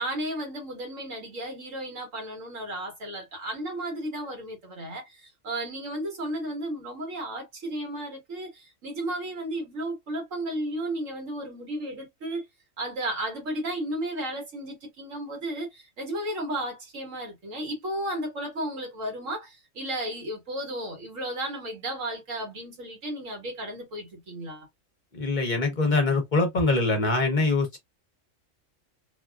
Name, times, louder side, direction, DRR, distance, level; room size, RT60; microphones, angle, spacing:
voice 1, 0.0-12.5 12.8-24.7, right 1 dB, 85° right, 1.8 m, -34 dB
voice 2, 25.1-27.8, left 3 dB, 45° left, 0.8 m, -23 dB
3.3 x 2.4 x 2.3 m
omnidirectional pair, 1.3 m